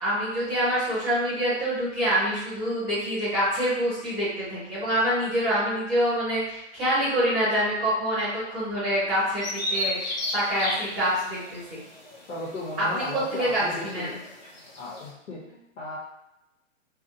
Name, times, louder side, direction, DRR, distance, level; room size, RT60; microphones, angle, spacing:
voice 1, 0.0-11.8 12.8-14.2, equal, 10° right, -12 dB, 0.8 m, -26 dB
Bird vocalization bird call bird song, 9.4-15.1, left 1 dB, 35° left, 0.4 m, -34 dB
voice 2, 12.3-14.2 14.8-16.0, left 2 dB, 85° left, -7 dB, 1.0 m, -36 dB
2.7 x 2.1 x 2.6 m, 0.89 s
hypercardioid pair, 175°, 38 cm